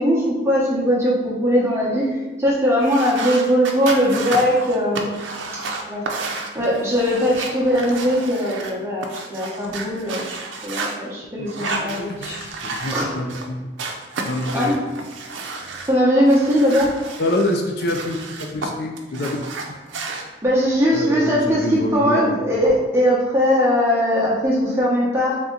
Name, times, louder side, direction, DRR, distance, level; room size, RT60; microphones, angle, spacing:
voice 1, 0.0-5.2 5.5-6.0 6.5-10.2 10.6-12.4 12.9-13.1 14.5-14.7 15.9-16.9 20.4-25.3, equal, 15° right, -6 dB, 0.8 m, -20 dB
sound 1, 2.8-8.7 9.0-10.9 11.5-13.5 13.8-15.9 16.3-18.7 19.0-20.2, right 3 dB, 90° right, 0.5 m, -31 dB
voice 2, 11.4-13.7 14.3-14.8 17.2-19.4 19.7-19.8 20.9-22.4, left 1 dB, 55° left, 2 dB, 0.4 m, -26 dB
3.5 x 2.8 x 3.8 m, 1.2 s
head